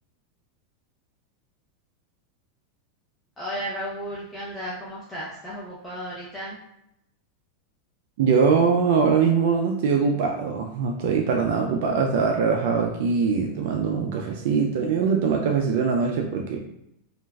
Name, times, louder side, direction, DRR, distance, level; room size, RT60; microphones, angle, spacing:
voice 1, 3.4-6.6, equal, 10° left, -9 dB, 0.6 m, -34 dB
voice 2, 8.2-16.6, right 5 dB, 65° right, 2 dB, 0.3 m, -22 dB
3.1 x 2.4 x 2.3 m, 0.79 s
supercardioid pair, 145°, 0 cm